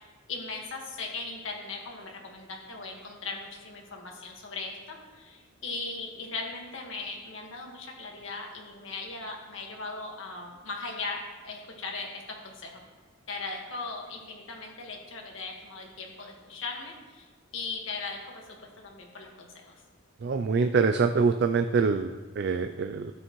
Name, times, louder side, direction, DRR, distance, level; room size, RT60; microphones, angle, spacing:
voice 1, 0.0-12.8 13.3-17.3 17.5-19.7, left 3 dB, 70° left, 0 dB, 1.6 m, -38 dB
voice 2, 20.2-23.1, right 5 dB, 50° right, 7 dB, 0.3 m, -25 dB
12.5 x 9.0 x 3.1 m, 1.3 s
head